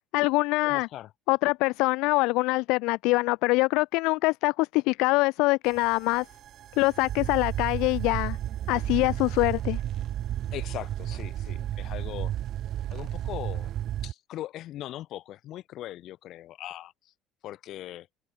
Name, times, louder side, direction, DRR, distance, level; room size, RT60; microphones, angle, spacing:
voice 1, 0.1-0.9 1.3-6.3 6.8-8.4 8.7-9.8, left 24 dB, 75° left, 0.6 m, -24 dB
voice 2, 0.6-1.1 10.5-12.3 12.9-13.7 14.0-16.9 17.4-18.1, left 13 dB, 60° left, 4.5 m, -40 dB
sound 1, 5.7-14.1, right 12 dB, 55° right, 2.2 m, -33 dB
supercardioid pair, 95°, 0 cm